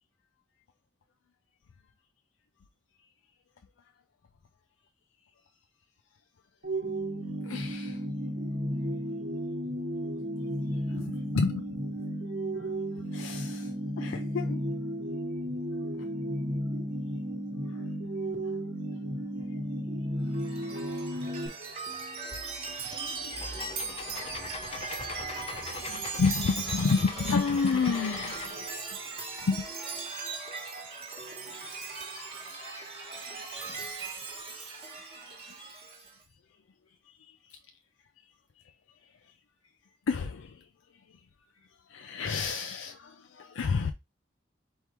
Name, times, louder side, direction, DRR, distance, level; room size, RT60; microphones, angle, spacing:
sound 1, 6.6-21.5, equal, 65° right, 0.9 m, -33 dB
voice 1, 7.4-8.0 10.7-11.8 12.6-12.7 13.1-14.6 17.7-17.9 19.1-19.2 19.5-19.6 21.1-21.2 22.2-29.0 29.4-29.7 31.5-32.1 32.7-33.9 34.5-35.4 35.6-35.7 37.1-37.6 40.1-40.7 41.9-43.9, left 4 dB, 90° left, 0.4 m, -33 dB
Chime, 20.3-36.1, right 4 dB, 30° right, 1.1 m, -39 dB
sound 2, 23.3-28.5, left 3 dB, 30° left, 0.6 m, -42 dB
4.4 x 3.7 x 2.9 m
head